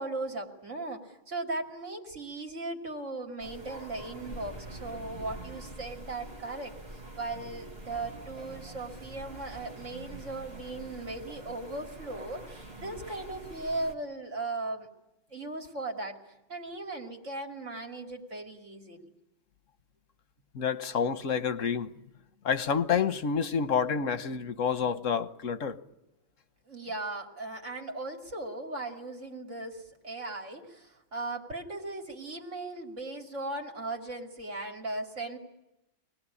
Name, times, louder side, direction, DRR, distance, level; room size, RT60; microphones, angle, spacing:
voice 1, 0.0-6.8 7.2-14.9 15.3-16.2 16.5-19.1 26.7-35.4, right 2 dB, 75° right, 3.2 m, -37 dB
sound 1, 3.4-13.9, right 1 dB, 50° right, 3.1 m, -45 dB
voice 2, 20.5-21.9 22.4-25.8, left 6 dB, 90° left, 1.5 m, -28 dB
25.5 x 19.5 x 9.8 m
omnidirectional pair, 1.3 m